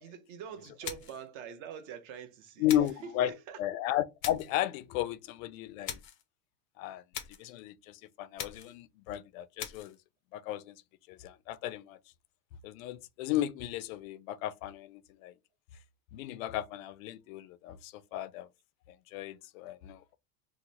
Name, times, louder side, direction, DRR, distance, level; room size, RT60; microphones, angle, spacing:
voice 1, 0.0-3.6, right 7 dB, 50° right, 0.8 m, -45 dB
sound 1, 0.8-1.3 2.7-3.0 4.2-4.6 5.8-6.2 7.1-7.5 8.4-8.8 9.6-10.0, left 9 dB, 35° left, 0.4 m, -41 dB
voice 2, 2.6-3.3 3.6-6.0 6.8-7.0 7.4-10.0 10.3-10.7 11.1-12.0 12.6-15.3 16.1-18.5 18.9-20.2, left 12 dB, 90° left, 0.5 m, -34 dB
2.9 x 2.1 x 3.9 m
supercardioid pair, 165°, 39 cm